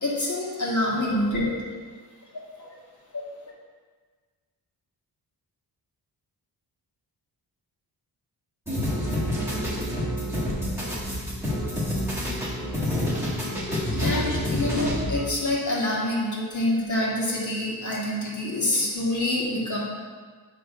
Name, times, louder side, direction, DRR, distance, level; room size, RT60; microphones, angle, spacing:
voice 1, 0.0-1.4 2.6-2.7 13.9-19.8, left 1 dB, 45° left, -6 dB, 1.9 m, -26 dB
sound 1, 8.7-15.3, equal, 5° right, 1.6 m, -28 dB
7.9 x 3.3 x 5.4 m, 1.5 s
wide cardioid pair, 135°, 40 cm